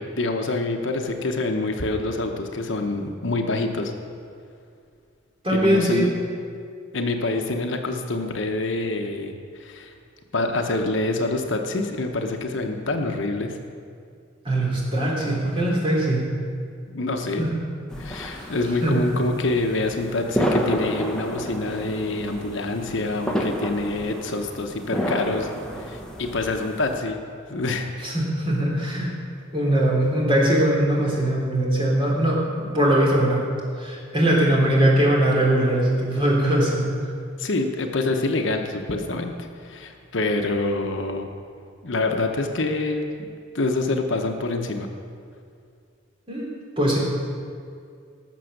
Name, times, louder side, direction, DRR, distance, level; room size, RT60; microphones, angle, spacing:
voice 1, 0.0-3.9 5.5-6.1 6.9-9.9 10.3-13.6 16.9-17.4 18.0-25.5 25.8-27.2 27.5-27.9 37.4-41.3 41.8-43.1 43.5-44.9, left 2 dB, 60° left, 4 dB, 1.0 m, -26 dB
voice 2, 5.4-6.0 14.4-16.2 17.4-17.5 18.4-18.5 18.8-19.0 28.0-29.1 29.5-33.4 33.8-36.8 46.3-46.5 46.8-47.0, right 1 dB, 25° right, -4 dB, 3.2 m, -21 dB
sound 1, 17.9-27.0, equal, 5° left, 1.1 m, -30 dB
18.5 x 7.0 x 6.6 m, 2.3 s
head